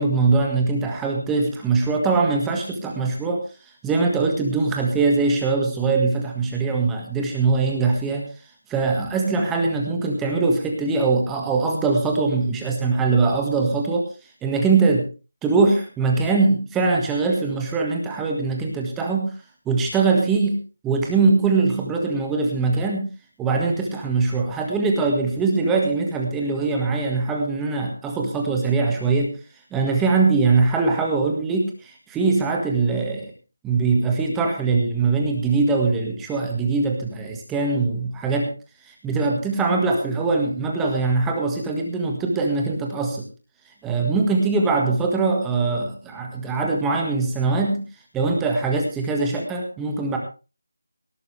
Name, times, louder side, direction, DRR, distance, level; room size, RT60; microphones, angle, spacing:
voice 1, 0.0-3.4 3.8-8.3 8.7-14.1 14.4-15.1 15.4-19.3 19.6-23.1 23.4-29.4 29.7-33.3 33.6-38.5 38.9-43.3 43.8-47.8 48.1-50.2, right 4 dB, 5° right, 1 dB, 1.6 m, -22 dB
18.5 x 12.0 x 3.3 m, 0.32 s
figure-of-eight pair, 175°, 0 cm